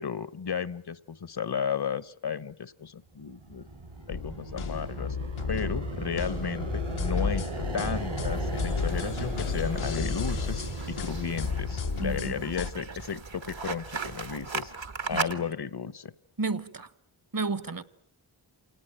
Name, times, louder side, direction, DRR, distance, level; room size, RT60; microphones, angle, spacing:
voice 1, 0.0-3.7 4.1-5.2 5.5-7.5 7.7-14.7 15.1-16.1, left 6 dB, 55° left, 1.0 m, -34 dB
sound 1, 3.2-13.0, right 2 dB, 90° right, 7.7 m, -37 dB
sound 2, 4.1-12.7, left 5 dB, 80° left, 1.1 m, -33 dB
sound 3, 8.3-15.4, right 4 dB, 65° right, 1.5 m, -38 dB
voice 2, 12.0-12.4 15.1-15.2 16.4-16.9 17.3-17.8, right 3 dB, 45° right, 1.1 m, -31 dB
28.0 x 18.5 x 9.0 m
wide cardioid pair, 55°, 48 cm